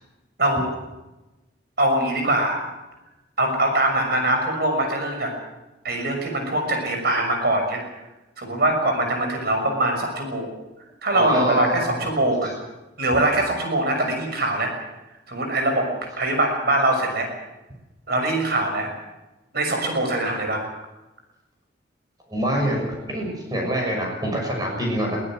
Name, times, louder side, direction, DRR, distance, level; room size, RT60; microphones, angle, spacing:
voice 1, 1.8-2.6 3.4-5.3 5.8-7.8 8.4-10.5 11.0-12.5 13.0-14.7 15.3-15.9 16.2-17.3 18.1-18.9 19.5-20.6, right 1 dB, 60° right, 4 dB, 6.3 m, -22 dB
voice 2, 11.1-12.1 22.3-25.2, right 1 dB, 25° right, 0 dB, 6.3 m, -25 dB
22.5 x 17.5 x 7.6 m, 1.0 s
head